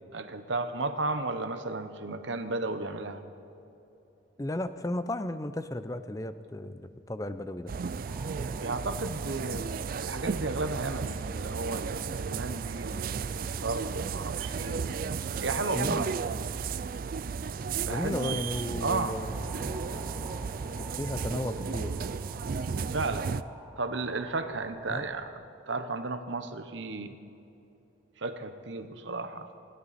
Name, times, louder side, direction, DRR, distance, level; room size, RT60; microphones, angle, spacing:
voice 1, 0.1-3.2 8.6-15.1 15.4-16.1 17.7-18.4 18.8-19.2 22.9-23.3 23.8-27.2 28.2-29.5, right 3 dB, 65° right, 9 dB, 1.0 m, -34 dB
voice 2, 4.4-7.7 15.7-16.1 17.9-19.4 20.8-21.9 24.9-25.1, left 1 dB, 15° left, 11 dB, 0.5 m, -34 dB
sound 1, 7.7-23.4, right 5 dB, 45° right, 0.3 m, -34 dB
sound 2, 17.6-25.3, right 1 dB, 5° right, 1.2 m, -50 dB
28.0 x 12.0 x 4.2 m, 2.9 s
head